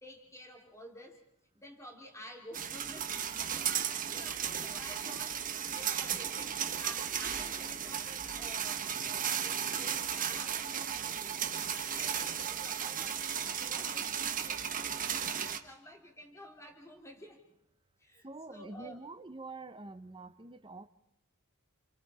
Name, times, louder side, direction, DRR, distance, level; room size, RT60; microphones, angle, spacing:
voice 1, 0.0-1.2 1.5-17.4 18.0-19.0, equal, 15° left, 1 dB, 3.1 m, -51 dB
sound 1, 2.5-15.6, right 8 dB, 40° right, 1.2 m, -35 dB
voice 2, 18.2-20.9, right 3 dB, 25° right, 10 dB, 1.0 m, -46 dB
28.5 x 28.5 x 4.3 m, 0.76 s
head